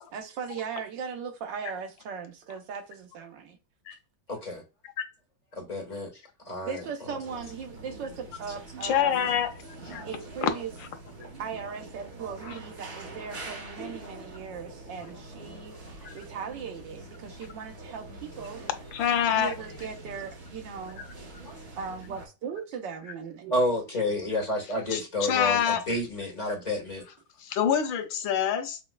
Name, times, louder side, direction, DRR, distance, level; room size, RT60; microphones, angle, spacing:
voice 1, 0.1-3.6 6.6-9.3 10.0-10.7 11.4-15.7 16.1-18.6 19.3-21.1 21.8-23.6, right 6 dB, 75° right, 1.4 m, -38 dB
voice 2, 4.3-4.6 5.6-6.1 6.5-6.8 9.9-10.1 21.4-21.5 23.5-27.0, left 1 dB, 25° left, 1.3 m, -30 dB
sound 1, 7.2-22.3, right 2 dB, 40° right, 1.2 m, -45 dB
voice 3, 8.8-9.5 9.9-10.0 10.4-10.5 18.9-19.5 24.9-25.0 25.3-25.8 27.4-28.8, left 9 dB, 85° left, 1.4 m, -25 dB
5.3 x 2.3 x 2.2 m
omnidirectional pair, 2.1 m